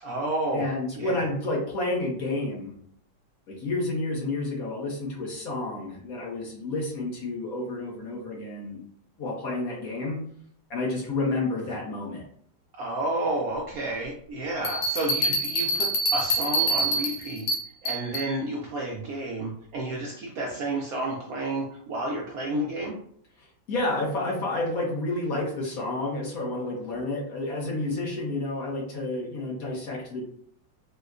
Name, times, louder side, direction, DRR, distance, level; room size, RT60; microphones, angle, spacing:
voice 1, 0.0-0.7 1.0-1.1 12.8-17.5 17.8-22.9, right 1 dB, 70° right, -2 dB, 0.9 m, -31 dB
voice 2, 0.5-2.7 3.5-8.8 9.2-10.2 10.7-12.2 23.4-30.2, left 2 dB, 60° left, -2 dB, 1.1 m, -30 dB
sound 1, 14.6-18.3, right 1 dB, 90° left, 1.5 m, -26 dB
4.4 x 2.1 x 2.4 m, 0.64 s
omnidirectional pair, 2.0 m